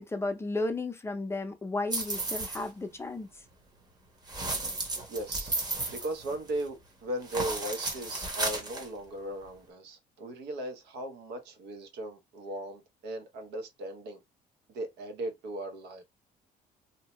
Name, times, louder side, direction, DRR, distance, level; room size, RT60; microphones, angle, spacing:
voice 1, 0.0-3.3, left 2 dB, 15° left, 0.5 m, -33 dB
sound 1, 1.9-2.7 4.3-6.7 7.2-8.9, right 2 dB, 25° right, 1.0 m, -34 dB
voice 2, 5.1-5.6 5.9-14.2 14.7-16.0, right 1 dB, 75° right, 0.8 m, -37 dB
2.7 x 2.1 x 3.0 m
cardioid pair, 110°, 17 cm